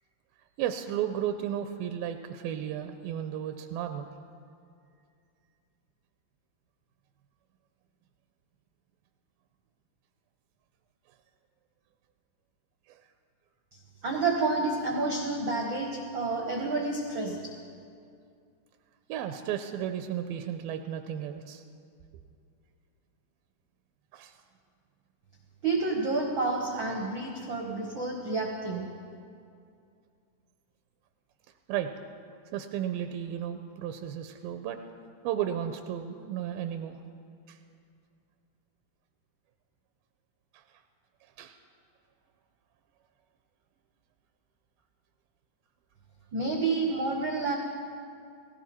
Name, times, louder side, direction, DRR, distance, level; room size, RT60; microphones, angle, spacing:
voice 1, 0.6-4.1 12.9-13.0 19.1-21.6 24.1-24.4 31.7-31.9 32.5-34.8 35.2-37.0 37.5-37.6 40.5-40.6 41.4-41.6, right 10 dB, 85° right, 7 dB, 2.3 m, -34 dB
voice 2, 14.0-17.5 25.6-28.9 46.3-47.5, right 3 dB, 70° right, 0 dB, 1.1 m, -29 dB
18.0 x 17.5 x 4.3 m, 2.4 s
omnidirectional pair, 4.2 m